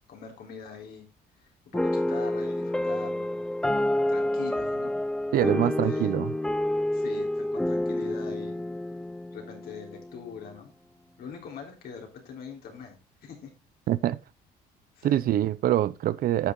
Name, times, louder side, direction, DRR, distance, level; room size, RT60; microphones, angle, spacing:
voice 1, 0.1-1.0 1.7-5.0 5.4-6.2 6.9-8.6 9.3-10.7 11.2-13.0 13.2-13.5 15.0-15.3, left 7 dB, 65° left, 3.6 m, -43 dB
sound 1, 1.7-10.3, left 1 dB, 5° left, 0.4 m, -28 dB
voice 2, 5.3-6.3 13.9-14.2 15.0-16.5, right 12 dB, 60° right, 0.6 m, -25 dB
9.9 x 6.9 x 3.7 m
cardioid pair, 110°, 17 cm